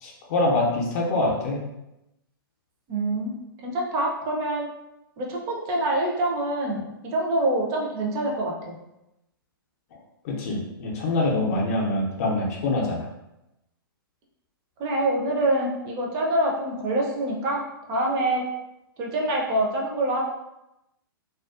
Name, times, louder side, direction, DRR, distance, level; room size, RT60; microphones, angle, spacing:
voice 1, 0.0-1.6 10.2-13.1, left 2 dB, 40° left, -2 dB, 0.6 m, -25 dB
voice 2, 2.9-3.3 3.6-4.7 5.2-8.8 14.8-17.6 17.9-18.5 19.0-20.2, right 1 dB, 30° right, -1 dB, 0.5 m, -25 dB
2.4 x 2.3 x 2.3 m, 0.91 s
figure-of-eight pair, 115°, 12 cm